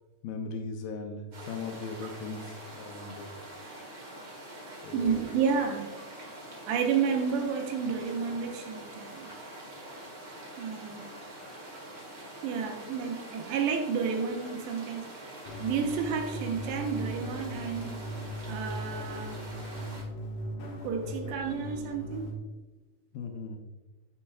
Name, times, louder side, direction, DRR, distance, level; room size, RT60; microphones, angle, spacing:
voice 1, 0.2-3.3 4.8-5.2 23.1-23.6, left 4 dB, 80° left, 4 dB, 2.1 m, -38 dB
sound 1, 1.3-20.0, right 1 dB, 65° right, 1.0 m, -45 dB
voice 2, 4.9-5.9 6.7-9.3 10.6-11.1 12.4-15.3 15.6-18.0 18.5-19.4 20.8-22.3, right 6 dB, 85° right, 3 dB, 3.1 m, -31 dB
sound 2, 15.5-22.3, equal, 60° left, 2.7 m, -38 dB
9.7 x 7.1 x 2.3 m, 1.1 s
omnidirectional pair, 4.9 m